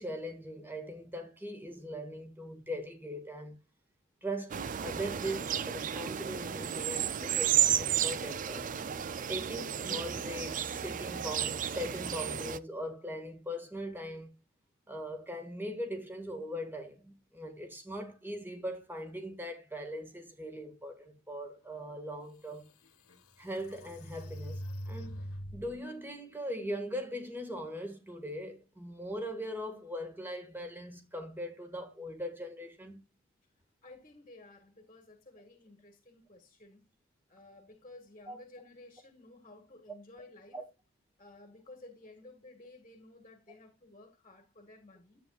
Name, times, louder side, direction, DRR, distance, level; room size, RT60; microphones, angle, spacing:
voice 1, 0.0-3.6 4.2-8.7 9.3-14.3 14.9-22.7 23.4-25.2 25.5-33.0 38.3-38.4 40.5-40.6, equal, 10° right, 1.7 m, -40 dB
sound 1, 4.5-12.6, right 9 dB, 35° right, 0.4 m, -32 dB
sound 2, 22.0-22.1 22.7-25.8, equal, 80° left, 1.4 m, -43 dB
voice 2, 33.8-36.9 37.3-40.6 41.2-45.2, left 2 dB, 30° left, 1.7 m, -54 dB
11.5 x 8.5 x 2.4 m
head